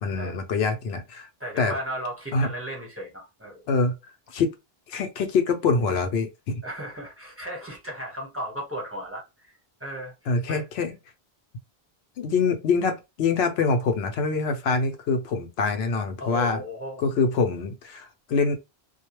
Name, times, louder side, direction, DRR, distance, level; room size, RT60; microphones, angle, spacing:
voice 1, 0.0-1.3 1.6-1.7 2.3-2.5 3.7-3.9 4.3-4.5 4.9-6.6 10.3-10.9 12.2-16.6 17.0-18.6, left 4 dB, 85° left, 0.9 m, -25 dB
voice 2, 1.4-3.7 6.6-10.6 16.2-17.1, equal, 15° right, 1.0 m, -36 dB
2.3 x 2.2 x 3.0 m
omnidirectional pair, 1.0 m